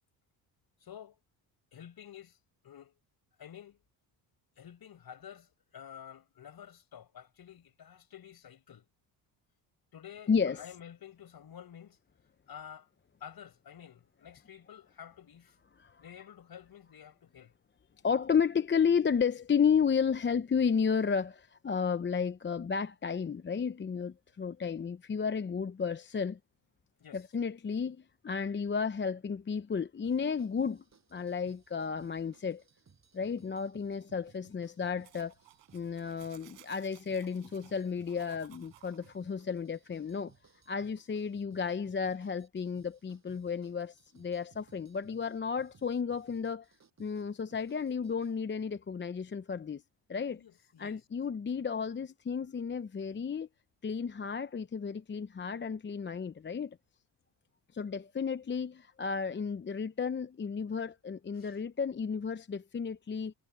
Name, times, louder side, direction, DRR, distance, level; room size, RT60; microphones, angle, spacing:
voice 1, 0.8-1.2 1.7-2.4 2.6-3.0 3.4-3.8 4.6-8.9 9.9-12.0 12.5-12.9 13.2-15.6 16.0-17.5 27.0-27.2 50.3-51.0 61.4-61.6, left 9 dB, 50° left, 5.6 m, -50 dB
voice 2, 10.3-10.7 15.8-16.0 18.0-26.4 27.1-30.8 31.1-32.6 33.1-35.3 35.7-40.3 40.7-46.7 47.0-49.8 50.1-50.4 50.8-53.5 53.8-56.8 57.7-63.3, left 6 dB, 25° left, 0.8 m, -32 dB
sound 1, 30.0-48.4, right 6 dB, 35° right, 7.0 m, -64 dB
sound 2, 35.0-39.2, right 19 dB, 90° right, 6.3 m, -60 dB
cardioid pair, 85°, 45 cm